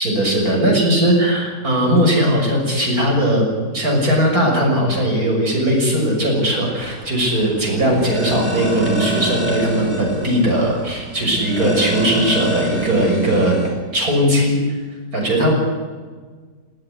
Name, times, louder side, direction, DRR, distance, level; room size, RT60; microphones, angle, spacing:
voice 1, 0.0-13.6 13.9-14.6 15.1-15.5, equal, 55° right, 0 dB, 7.1 m, -18 dB
sound 1, 6.8-13.7, right 2 dB, 15° right, 5.7 m, -26 dB
19.5 x 17.5 x 9.9 m, 1.5 s
omnidirectional pair, 1.8 m